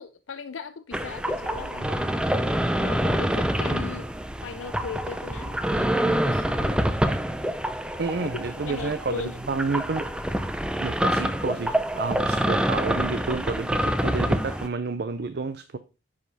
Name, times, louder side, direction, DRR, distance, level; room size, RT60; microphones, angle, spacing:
voice 1, 0.0-2.0 2.8-4.1 4.4-6.9 8.6-9.4, left 5 dB, 85° left, 0.5 m, -38 dB
sound 1, 0.9-14.7, equal, 5° right, 0.5 m, -26 dB
voice 2, 8.0-10.1 10.8-15.8, right 4 dB, 55° right, 0.5 m, -30 dB
9.9 x 5.0 x 4.0 m
head